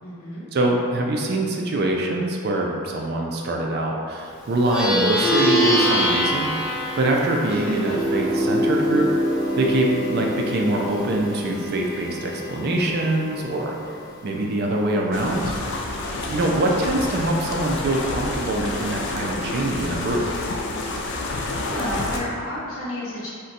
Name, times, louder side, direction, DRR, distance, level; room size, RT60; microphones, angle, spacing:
voice 1, 0.0-0.4 16.8-17.0 21.6-23.3, left 1 dB, 70° left, -6 dB, 0.8 m, -31 dB
voice 2, 0.5-6.5 7.0-9.1 9.6-13.8 14.2-15.5 16.3-20.2, right 1 dB, 45° right, 0 dB, 0.3 m, -24 dB
Plucked string instrument, 4.5-14.2, equal, 5° right, 0.6 m, -24 dB
sound 1, 15.1-22.2, left 2 dB, 55° left, 0.3 m, -29 dB
2.5 x 2.1 x 4.0 m, 2.4 s
head